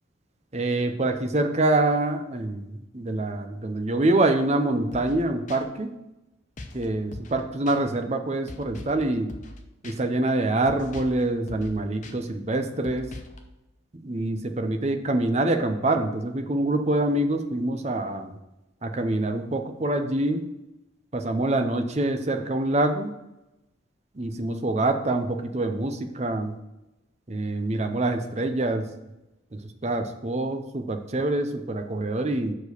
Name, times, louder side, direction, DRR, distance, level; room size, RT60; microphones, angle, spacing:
voice 1, 0.5-5.9 6.7-9.3 9.8-13.1 13.9-18.4 18.8-20.5 21.1-23.1 24.1-26.5 27.3-28.9 29.5-32.5, right 2 dB, 35° right, 6 dB, 0.7 m, -25 dB
sound 1, 4.9-5.2 5.5-5.6 6.6-6.8 7.1-7.4 7.7-7.8 8.5-9.0 9.3-9.6 9.8-10.0 10.7-11.2 11.5-11.7 12.0-12.1 12.8-13.4, left 2 dB, 40° left, 0.8 m, -40 dB
6.2 x 4.9 x 6.6 m, 0.96 s
head